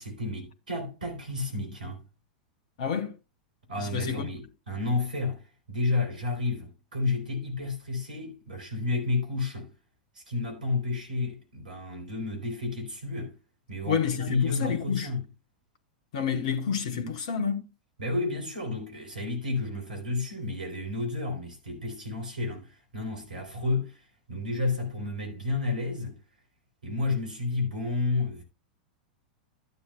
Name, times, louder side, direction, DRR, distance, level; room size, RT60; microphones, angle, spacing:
voice 1, 0.0-2.0 3.7-9.7 10.1-13.4 13.7-15.2 18.0-26.2 26.8-28.4, left 3 dB, 75° right, 4.0 m, -31 dB
voice 2, 2.8-3.1 3.8-4.3 13.8-15.1 16.1-17.7, left 7 dB, 55° left, 1.2 m, -29 dB
12.5 x 9.5 x 2.3 m
figure-of-eight pair, 90°, 4 cm